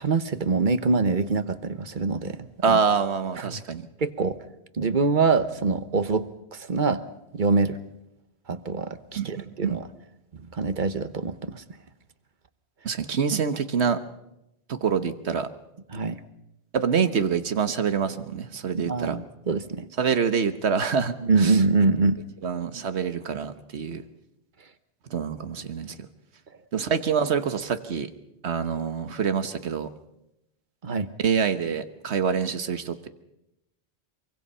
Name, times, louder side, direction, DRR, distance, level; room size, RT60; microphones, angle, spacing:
voice 1, 0.0-2.8 3.4-3.6 4.0-4.4 4.8-7.0 7.3-7.8 8.5-9.8 10.5-11.6 15.9-16.2 18.8-19.9 21.2-22.2 30.8-31.1, right 4 dB, 50° right, 12 dB, 1.2 m, -24 dB
voice 2, 2.6-3.9 9.1-9.8 12.8-14.0 14.7-15.5 16.7-19.2 20.0-21.6 22.4-24.0 25.1-25.9 26.7-28.1 28.4-29.9 31.2-33.1, right 6 dB, 90° right, 11 dB, 1.5 m, -26 dB
24.5 x 24.0 x 5.6 m, 0.88 s
omnidirectional pair, 1.1 m